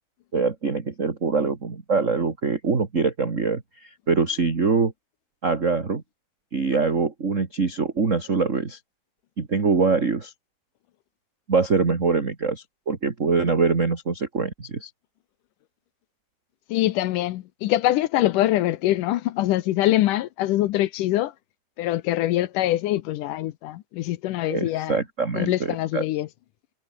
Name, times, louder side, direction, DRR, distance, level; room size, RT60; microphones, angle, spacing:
voice 1, 0.3-4.9 5.4-6.0 6.5-8.8 9.4-10.3 11.5-14.9 24.5-26.0, right 4 dB, 25° right, 1.9 m, -24 dB
voice 2, 16.7-21.3 21.8-25.0 25.4-26.3, left 15 dB, 75° left, 2.2 m, -24 dB
omnidirectional pair, 4.1 m